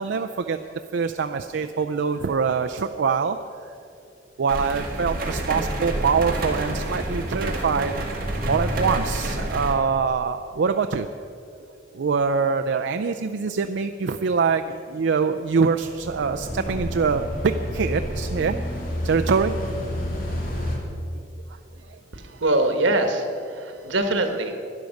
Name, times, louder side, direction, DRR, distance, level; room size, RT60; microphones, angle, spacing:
voice 1, 0.0-3.4 3.7-3.8 4.4-7.9 8.5-11.1 11.9-18.6 19.0-19.5 21.9-22.0, right 5 dB, 70° right, 6 dB, 0.4 m, -24 dB
sound 1, 4.5-9.7, right 1 dB, 50° right, 1.9 m, -28 dB
sound 2, 15.8-20.8, equal, 45° left, 2.2 m, -30 dB
voice 2, 22.1-24.5, right 2 dB, 90° right, 6 dB, 1.3 m, -23 dB
12.0 x 10.5 x 6.4 m, 2.5 s
head